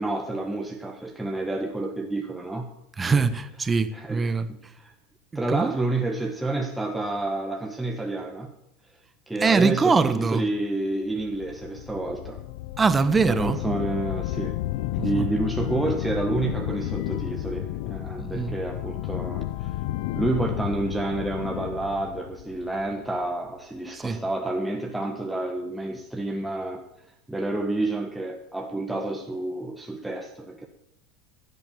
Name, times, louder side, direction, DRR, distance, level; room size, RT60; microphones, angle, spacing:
voice 1, 0.0-2.7 3.0-3.3 3.9-4.9 5.3-8.5 9.3-12.4 13.2-14.6 14.9-19.7 20.1-26.8 27.3-30.7, right 2 dB, 5° right, 1 dB, 1.5 m, -29 dB
voice 2, 3.0-4.5 5.3-5.8 9.4-10.5 12.8-13.6 15.0-15.3 18.2-18.5 23.9-24.2, right 4 dB, 20° right, 13 dB, 1.1 m, -23 dB
sound 1, 11.2-23.2, left 16 dB, 70° left, 0.5 m, -32 dB
15.0 x 8.3 x 7.3 m, 0.79 s
hypercardioid pair, 90°, 0 cm